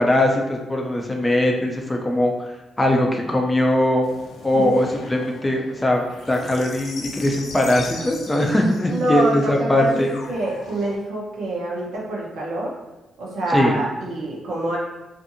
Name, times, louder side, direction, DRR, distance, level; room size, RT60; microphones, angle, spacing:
voice 1, 0.0-4.0 4.4-10.1 13.5-13.8, left 1 dB, 15° left, 1 dB, 0.4 m, -20 dB
sound 1, 4.0-11.0, left 3 dB, 70° left, 0.4 m, -40 dB
voice 2, 8.9-12.7 13.2-14.8, right 1 dB, 85° right, -3 dB, 0.7 m, -26 dB
2.6 x 2.5 x 2.6 m, 1.1 s
cardioid pair, 125°, 0 cm